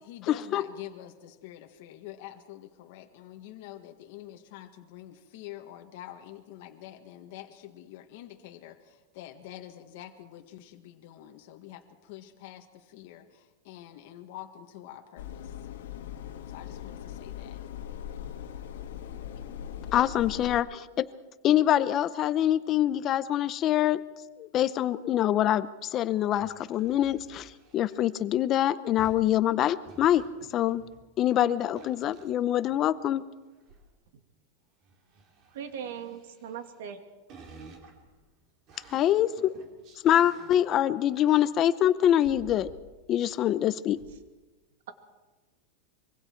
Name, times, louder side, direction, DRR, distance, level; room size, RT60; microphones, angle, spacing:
voice 1, 0.0-15.7 16.5-17.6 19.1-19.5, left 12 dB, 50° left, 4 dB, 1.6 m, -46 dB
sound 1, 15.2-20.6, left 10 dB, 85° left, 2.1 m, -40 dB
voice 2, 19.9-21.1 21.4-24.0 24.4-30.2 30.5-30.8 31.2-33.2 38.9-39.5 40.0-42.7 43.1-44.0, left 11 dB, 25° left, 14 dB, 0.6 m, -25 dB
sound 2, 26.1-28.1 29.0-31.3 31.8-33.0 33.5-33.9 34.8-36.9 37.3-41.7 42.2-43.0 43.3-43.4 43.9-44.2, right 4 dB, 30° right, 2.9 m, -53 dB
voice 3, 35.5-37.0, right 8 dB, 70° right, 6 dB, 2.4 m, -39 dB
25.0 x 23.0 x 4.6 m, 1.2 s
supercardioid pair, 175°, 0 cm